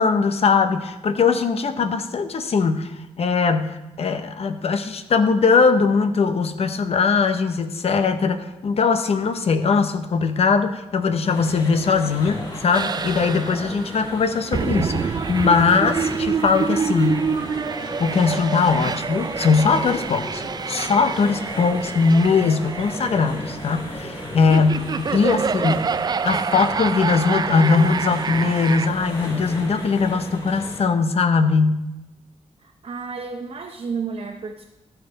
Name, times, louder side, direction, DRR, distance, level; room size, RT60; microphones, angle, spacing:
voice 1, 0.0-17.3 17.8-25.8 26.2-31.9, left 5 dB, 65° left, 9 dB, 0.8 m, -20 dB
sound 1, 11.3-30.8, left 1 dB, 35° left, 3.8 m, -36 dB
sound 2, 12.7-28.9, right 5 dB, 35° right, 0.3 m, -27 dB
voice 2, 25.3-25.8 32.8-34.6, right 5 dB, 55° right, 2 dB, 0.8 m, -31 dB
14.5 x 5.9 x 4.1 m, 0.98 s
cardioid pair, 95°, 11 cm